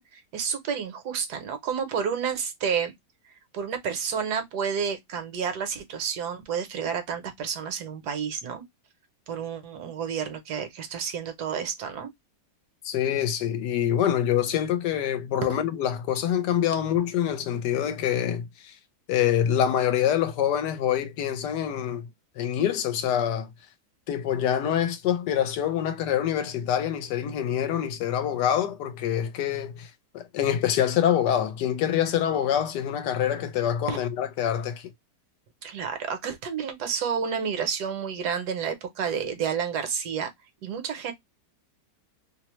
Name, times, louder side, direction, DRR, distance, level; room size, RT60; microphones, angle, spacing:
voice 1, 0.0-2.9 3.2-8.6 9.3-12.1 15.5-15.6 33.9-34.0 35.6-40.3 40.6-41.1, right 7 dB, 70° right, 1.2 m, -30 dB
voice 2, 12.8-18.7 19.1-22.1 22.4-23.5 24.1-29.9 30.1-34.9, left 10 dB, 80° left, 1.2 m, -25 dB
2.9 x 2.0 x 2.9 m
omnidirectional pair, 1.8 m